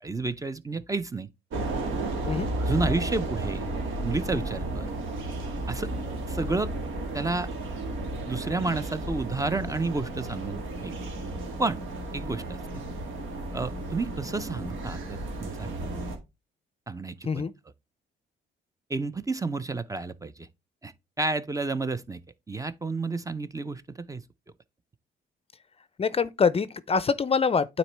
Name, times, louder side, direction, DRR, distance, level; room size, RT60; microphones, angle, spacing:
voice 1, 0.0-1.3 2.6-3.7 4.0-4.9 5.7-5.9 6.3-6.7 7.1-7.5 8.2-10.9 11.6-11.8 12.1-12.6 13.5-16.1 16.9-17.4 18.9-20.5 20.8-22.2 22.5-24.2, right 3 dB, 15° right, 0.5 m, -31 dB
sound 1, 1.5-16.2, right 2 dB, 85° right, 1.9 m, -33 dB
voice 2, 26.0-27.8, left 5 dB, 30° left, 0.5 m, -25 dB
9.1 x 4.2 x 3.3 m
cardioid pair, 90°, 20 cm